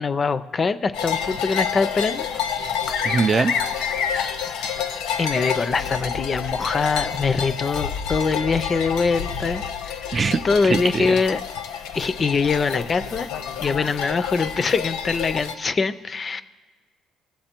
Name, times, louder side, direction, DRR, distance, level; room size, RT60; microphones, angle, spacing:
voice 1, 0.0-2.3 2.6-2.8 5.2-10.1 10.4-11.4 11.9-13.3 13.6-16.4, left 4 dB, 30° left, 13 dB, 0.4 m, -23 dB
sound 1, 0.9-15.5, left 7 dB, 85° left, 0.8 m, -28 dB
voice 2, 3.0-3.5 10.1-11.2, right 4 dB, 30° right, 14 dB, 0.3 m, -22 dB
19.0 x 7.3 x 4.4 m, 1.3 s
cardioid pair, 105°, 0 cm